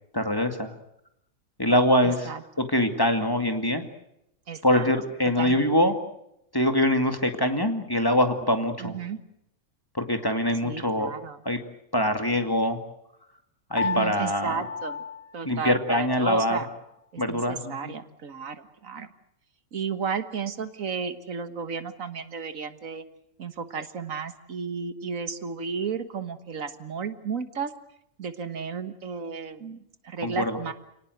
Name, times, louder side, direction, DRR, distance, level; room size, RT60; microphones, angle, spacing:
voice 1, 0.1-0.7 1.6-2.3 2.6-3.8 4.6-6.0 6.5-8.9 9.9-11.1 11.5-11.6 11.9-12.8 13.7-14.6 15.4-16.6 17.2-18.0 30.2-30.6, left 1 dB, 15° left, 6 dB, 2.2 m, -24 dB
voice 2, 2.0-2.4 4.5-4.9 5.4-5.8 8.8-9.2 10.6-11.4 13.8-15.0 15.3-16.7 17.1-19.1 19.7-23.0 23.4-27.7 28.2-30.7, right 6 dB, 70° right, 10 dB, 1.8 m, -33 dB
Piano, 13.8-16.3, left 5 dB, 80° left, 2.0 m, -34 dB
29.5 x 18.5 x 7.9 m, 0.80 s
omnidirectional pair, 1.4 m